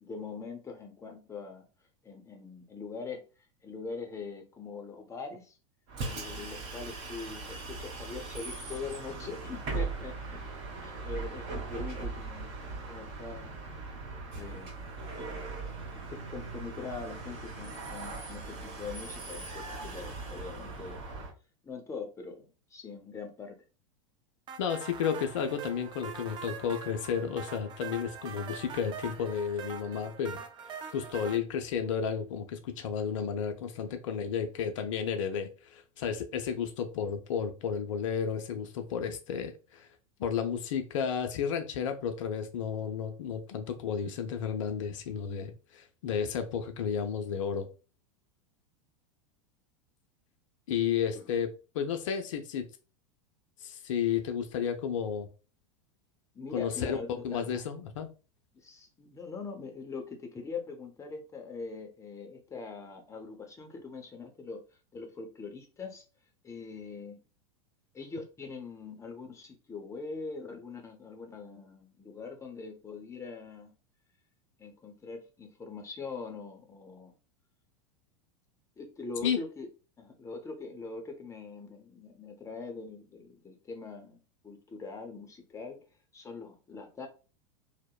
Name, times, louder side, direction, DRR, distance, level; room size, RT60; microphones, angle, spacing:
voice 1, 0.0-1.7 2.0-3.2 3.6-5.6 6.0-10.4 10.8-12.5 12.9-13.6 14.3-14.8 15.9-21.1 21.6-23.6 51.1-51.3 56.3-57.6 58.5-64.6 64.9-66.0 66.4-67.2 67.9-73.7 74.6-77.1 78.8-79.7 80.0-85.8 86.1-87.1, left 4 dB, 15° left, 4 dB, 0.6 m, -42 dB
Bus, 5.9-21.3, right 3 dB, 45° right, 1.2 m, -39 dB
sound 1, 24.5-31.4, right 7 dB, 30° right, 0.4 m, -43 dB
voice 2, 24.6-30.4 30.9-39.9 40.2-47.7 50.7-51.5 51.7-52.6 53.6-55.3 56.5-57.0 57.2-58.1 79.2-79.4, left 7 dB, 70° left, 6 dB, 0.5 m, -32 dB
2.7 x 2.0 x 2.2 m, 0.33 s
hypercardioid pair, 95°, 17 cm